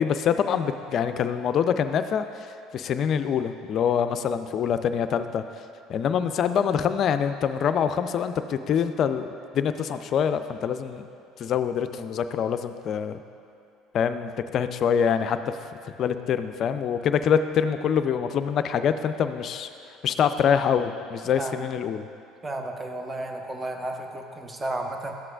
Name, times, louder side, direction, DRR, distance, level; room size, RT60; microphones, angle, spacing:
voice 1, 0.0-2.5 2.7-5.4 5.9-9.3 9.5-11.1 11.4-13.2 13.9-15.4 16.0-19.7 20.0-22.1, left 7 dB, 50° left, 10 dB, 0.4 m, -25 dB
voice 2, 22.4-25.1, right 2 dB, 25° right, 4 dB, 0.8 m, -33 dB
13.0 x 7.6 x 2.4 m, 2.6 s
hypercardioid pair, 60°, 0 cm